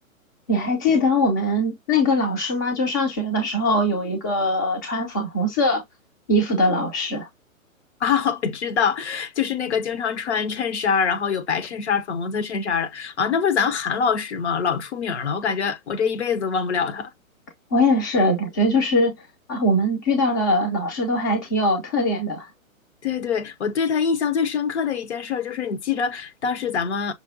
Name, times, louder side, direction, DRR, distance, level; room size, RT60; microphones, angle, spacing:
voice 1, 0.5-5.8 6.3-7.3 17.7-19.2 19.5-22.5, left 1 dB, 15° left, 0.4 m, -21 dB
voice 2, 8.0-17.1 23.0-27.1, left 6 dB, 55° left, 0.7 m, -24 dB
5.7 x 2.2 x 2.4 m
figure-of-eight pair, 120°, 41 cm